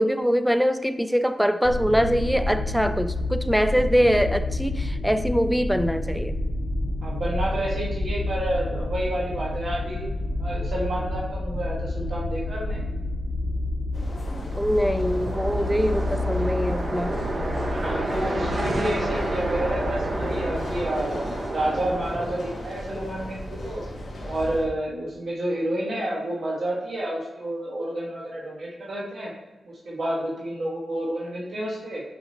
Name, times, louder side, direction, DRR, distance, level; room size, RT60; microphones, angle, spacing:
voice 1, 0.0-6.4 14.6-17.2, equal, ahead, 11 dB, 0.4 m, -23 dB
sound 1, 1.6-20.8, left 1 dB, 75° left, 0.7 m, -29 dB
voice 2, 7.0-10.0 10.4-12.8 17.7-23.8 24.2-29.3 29.6-32.0, right 1 dB, 70° right, -4 dB, 1.5 m, -29 dB
sound 2, 13.9-24.7, left 1 dB, 55° left, 1.4 m, -38 dB
sound 3, 14.2-23.2, right 1 dB, 40° right, 1.0 m, -31 dB
6.2 x 5.1 x 2.9 m, 1.1 s
cardioid pair, 70°, 0 cm